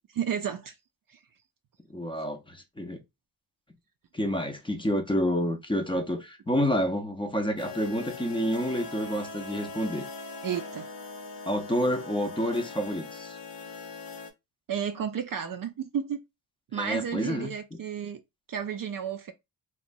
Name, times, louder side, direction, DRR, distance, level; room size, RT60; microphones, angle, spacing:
voice 1, 0.1-0.7 10.4-10.9 14.7-16.2 16.7-18.2 18.5-19.3, right 8 dB, 50° right, 0.5 m, -32 dB
voice 2, 1.9-3.0 4.1-10.1 11.5-13.4 16.7-17.5, equal, 10° left, 0.5 m, -29 dB
sound 1, 7.6-14.3, left 3 dB, 90° left, 0.7 m, -41 dB
2.9 x 2.2 x 2.5 m
cardioid pair, 60°, 44 cm